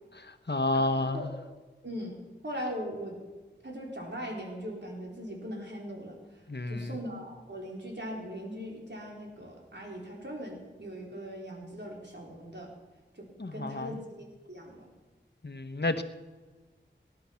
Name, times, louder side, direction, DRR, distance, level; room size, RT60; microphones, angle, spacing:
voice 1, 0.1-1.3 6.5-7.0 13.4-14.0 15.4-16.0, left 2 dB, 60° left, 9 dB, 1.1 m, -30 dB
voice 2, 0.7-1.3 1.8-2.2 2.4-3.1 3.6-12.7 13.1-14.9, equal, 60° right, -1 dB, 4.1 m, -40 dB
18.5 x 11.5 x 5.8 m, 1.3 s
wide cardioid pair, 40°, 20 cm